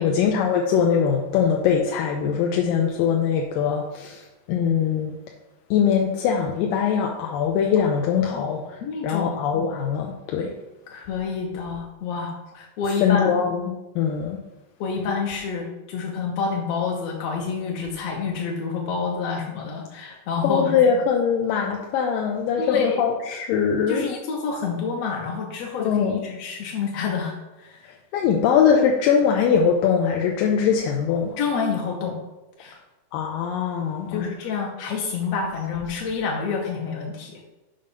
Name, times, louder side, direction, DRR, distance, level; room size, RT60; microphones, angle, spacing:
voice 1, 0.0-5.2 5.7-8.8 9.0-10.5 13.0-14.4 20.4-24.0 25.8-26.2 28.1-31.4 33.1-34.3, left 7 dB, 85° left, 1 dB, 2.4 m, -22 dB
voice 2, 8.3-9.4 10.9-13.3 14.8-20.7 22.6-23.0 23.9-27.9 31.4-32.2 32.6-32.8 34.1-37.4, left 5 dB, 70° left, -1 dB, 1.6 m, -28 dB
6.9 x 5.5 x 5.2 m, 1.0 s
omnidirectional pair, 3.9 m